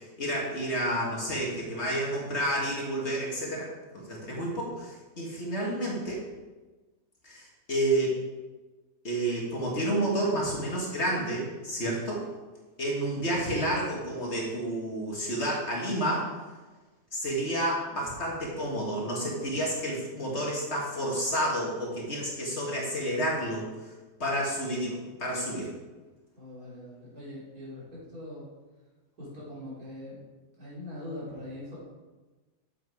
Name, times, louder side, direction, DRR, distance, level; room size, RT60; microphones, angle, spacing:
voice 1, 0.2-3.7 3.9-6.2 7.2-8.1 9.0-12.2 12.8-16.3 17.1-23.9 24.2-25.7, right 1 dB, 50° left, -3 dB, 1.8 m, -30 dB
voice 2, 24.2-24.6 26.4-28.5 29.2-30.2 30.6-31.8, left 1 dB, 90° right, -7 dB, 4.1 m, -42 dB
7.7 x 7.5 x 4.7 m, 1.2 s
omnidirectional pair, 1.5 m